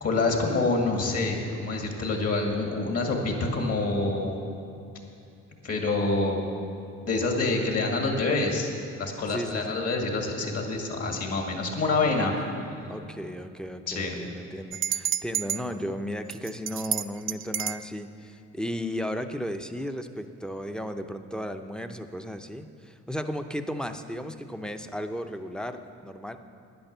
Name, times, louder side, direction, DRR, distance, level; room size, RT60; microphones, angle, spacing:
voice 1, 0.0-4.4 5.6-6.5 7.1-8.7 9.0-12.3 13.9-14.2, left 3 dB, 55° left, 1 dB, 2.3 m, -26 dB
voice 2, 9.3-9.7 12.1-12.6 12.9-26.4, equal, 5° left, 7 dB, 0.6 m, -35 dB
sound 1, 14.7-15.6 16.3-17.9, right 9 dB, 45° right, 0.4 m, -29 dB
10.5 x 9.8 x 6.7 m, 2.6 s
cardioid pair, 90°, 30 cm